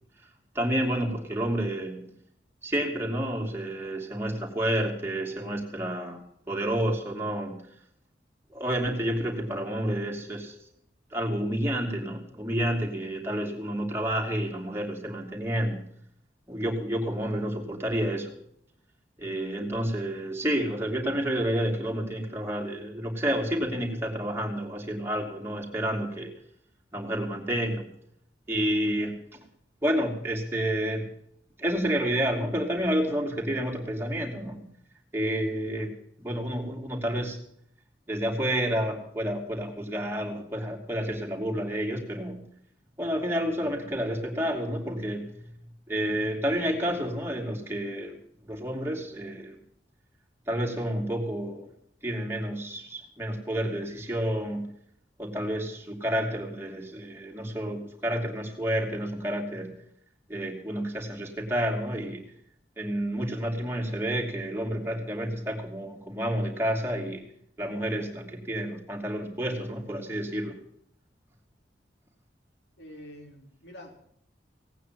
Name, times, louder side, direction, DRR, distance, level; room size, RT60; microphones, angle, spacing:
voice 1, 0.5-2.0 2.6-6.2 6.5-7.6 8.5-10.5 11.1-15.8 16.5-18.3 19.2-26.3 26.9-27.9 28.5-29.4 29.8-31.1 31.6-34.6 35.1-35.9 36.2-37.4 38.1-42.4 43.0-45.4 45.9-48.2 48.4-49.6 50.5-51.7 52.0-54.6 55.2-59.7 60.3-62.2 62.8-67.2 67.6-70.6, equal, 15° right, 0 dB, 2.8 m, -30 dB
voice 2, 72.8-74.1, left 1 dB, 75° left, 1 dB, 4.0 m, -46 dB
17.5 x 9.2 x 7.6 m, 0.70 s
head